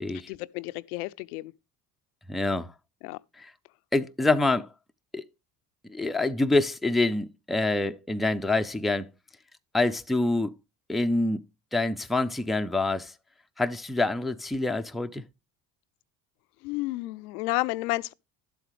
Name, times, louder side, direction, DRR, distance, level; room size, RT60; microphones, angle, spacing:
voice 1, 0.3-1.5 3.0-3.2 16.6-18.1, left 21 dB, 85° left, 0.6 m, -31 dB
voice 2, 2.3-2.7 3.4-3.5 3.9-4.7 5.1-5.2 5.9-9.1 9.7-10.5 10.9-11.4 11.7-13.1 13.6-15.2, left 2 dB, ahead, 0.4 m, -26 dB
12.0 x 7.9 x 3.1 m
hypercardioid pair, 70°, 43 cm